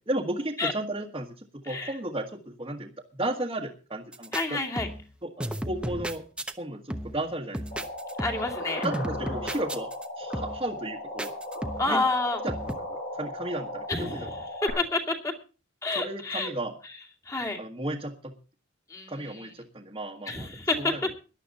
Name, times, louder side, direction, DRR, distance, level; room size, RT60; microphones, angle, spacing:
voice 1, 0.1-4.6 5.2-6.2 6.6-7.6 8.8-9.9 10.2-11.3 11.8-12.0 12.4-14.3 15.9-16.7 17.6-18.3 19.1-20.5 20.8-21.2, right 1 dB, 25° right, -2 dB, 1.5 m, -34 dB
sound 1, 4.1-4.4 4.8-5.1 5.4-6.5 6.9-7.3 7.5-8.6 8.8-10.1 10.3-10.7 11.2-12.0 12.5-12.8, equal, 5° right, 0.9 m, -34 dB
voice 2, 4.3-4.9 8.2-8.8 11.8-12.4 13.9-15.3 15.8-16.5 17.2-17.6 18.9-19.5 20.3-21.2, left 2 dB, 15° left, 2 dB, 2.4 m, -29 dB
sound 2, 7.7-14.7, left 1 dB, 50° left, 5.1 m, -36 dB
18.0 x 11.5 x 4.1 m, 0.35 s
head